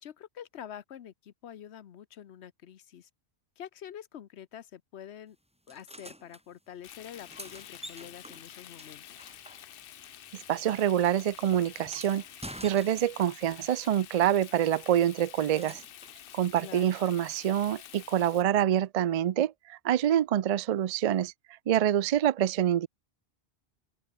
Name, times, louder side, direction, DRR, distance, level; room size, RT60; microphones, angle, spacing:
voice 1, 0.0-3.1 3.6-5.4 5.7-9.2 16.6-17.0, left 9 dB, 80° left, 1.1 m, -46 dB
sound 1, 5.7-6.4 7.0-10.0 10.3-13.4 14.9-16.2 18.2-18.3, equal, 5° right, 2.2 m, -48 dB
Frying (food), 6.8-18.4, left 11 dB, 60° left, 0.8 m, -49 dB
voice 2, 10.5-12.2 12.6-15.8 16.3-21.3 21.7-22.9, right 11 dB, 60° right, 0.4 m, -26 dB
open air
omnidirectional pair, 1.1 m